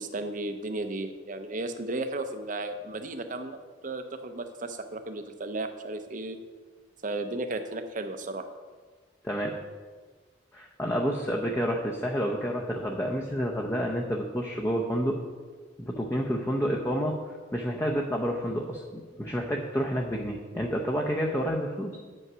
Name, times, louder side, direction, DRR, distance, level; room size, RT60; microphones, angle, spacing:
voice 1, 0.0-3.6 3.8-6.4 7.0-8.5, right 2 dB, 40° right, 8 dB, 0.7 m, -34 dB
voice 2, 10.5-15.2 15.8-21.9, equal, 15° left, -1 dB, 0.6 m, -29 dB
8.6 x 5.5 x 6.1 m, 1.5 s
head